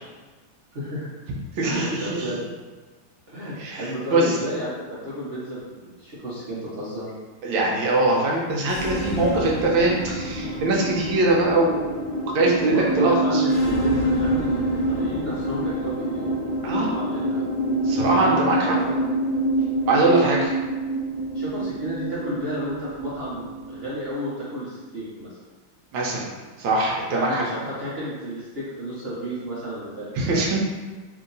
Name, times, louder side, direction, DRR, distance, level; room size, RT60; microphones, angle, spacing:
voice 1, 0.7-1.1 1.6-2.4 3.3-7.1 12.6-16.3 16.7-17.4 17.9-19.0 20.1-20.3 21.3-25.3 27.1-30.4, equal, 45° right, -9 dB, 0.8 m, -32 dB
voice 2, 1.6-2.2 3.6-4.4 7.4-12.0 12.3-13.4 16.6-16.9 17.8-18.7 19.9-20.5 25.9-26.3 26.6-27.4 30.1-30.6, right 2 dB, 75° right, -2 dB, 1.4 m, -22 dB
sound 1, 8.6-24.1, right 1 dB, 30° left, 0.7 m, -26 dB
3.6 x 2.8 x 3.9 m, 1.3 s
omnidirectional pair, 2.3 m